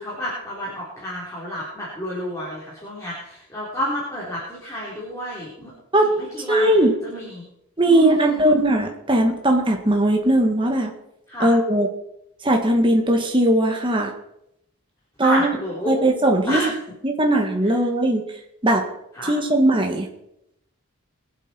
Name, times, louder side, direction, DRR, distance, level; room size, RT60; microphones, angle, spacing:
voice 1, 0.0-5.7 6.2-7.5 7.8-8.4 11.3-11.5 15.2-15.9 16.5-16.7 19.1-19.3, equal, 15° left, -7 dB, 3.9 m, -30 dB
voice 2, 6.5-6.9 7.8-10.9 11.4-11.9 12.4-14.1 15.2-15.6 15.9-16.6 17.0-18.2 18.6-18.8 19.2-20.1, right 1 dB, 25° right, 2 dB, 1.6 m, -19 dB
22.5 x 7.9 x 4.5 m, 0.81 s
head